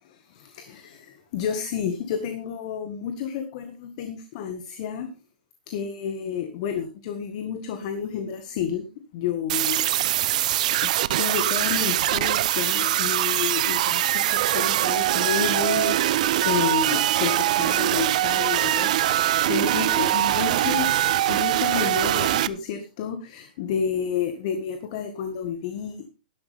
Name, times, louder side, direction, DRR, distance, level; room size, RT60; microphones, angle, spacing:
voice 1, 0.0-5.1 5.7-8.9 9.1-10.4 10.8-26.1, left 7 dB, 45° left, 8 dB, 1.7 m, -31 dB
sound 1, 9.5-22.5, right 13 dB, 55° right, 0.7 m, -22 dB
12.0 x 12.0 x 3.5 m, 0.31 s
hypercardioid pair, 140°, 5 cm